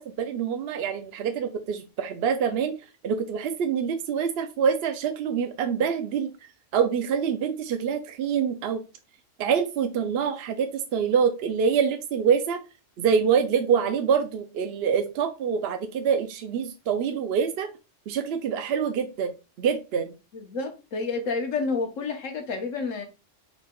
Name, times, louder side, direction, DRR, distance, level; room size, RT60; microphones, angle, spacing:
voice 1, 0.0-2.7 3.0-6.3 6.7-8.8 9.4-12.6 13.0-17.7 18.1-20.1, right 7 dB, 65° right, 0.7 m, -25 dB
voice 2, 20.3-23.0, left 4 dB, 85° left, 1.3 m, -29 dB
4.4 x 4.1 x 2.3 m
omnidirectional pair, 1.3 m